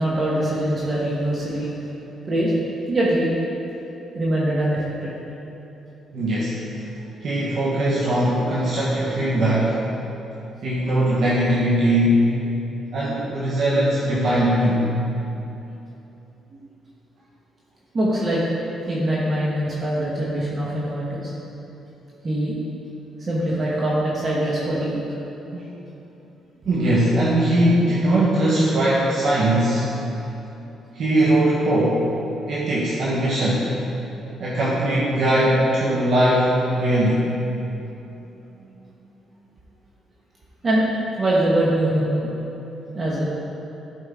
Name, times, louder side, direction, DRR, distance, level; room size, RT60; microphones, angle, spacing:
voice 1, 0.0-1.9 2.3-2.5 2.9-3.4 4.1-5.1 16.6-16.7 17.9-18.4 18.9-21.3 22.2-22.5 23.2-25.0 40.6-40.8 41.2-42.3 42.9-43.3, right 1 dB, 35° right, -6 dB, 1.4 m, -23 dB
voice 2, 6.1-6.6 7.2-9.8 10.6-12.3 12.9-14.9 25.5-25.6 26.6-29.9 30.9-32.1 32.5-33.7 34.4-37.4, right 1 dB, 65° right, -7 dB, 1.2 m, -20 dB
11.5 x 5.1 x 3.7 m, 3.0 s
cardioid pair, 90°, 0 cm